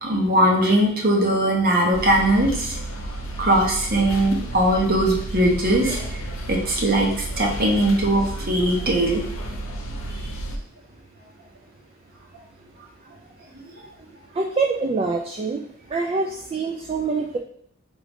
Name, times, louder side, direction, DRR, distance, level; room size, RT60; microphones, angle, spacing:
voice 1, 0.0-2.8 3.4-6.1 6.5-9.2, right 1 dB, 45° right, -1 dB, 1.0 m, -20 dB
sound 1, 1.9-10.6, right 1 dB, 80° left, 0.7 m, -32 dB
voice 2, 14.4-15.7 15.9-17.4, right 4 dB, 25° right, 1 dB, 0.3 m, -25 dB
3.7 x 3.7 x 3.6 m, 0.66 s
head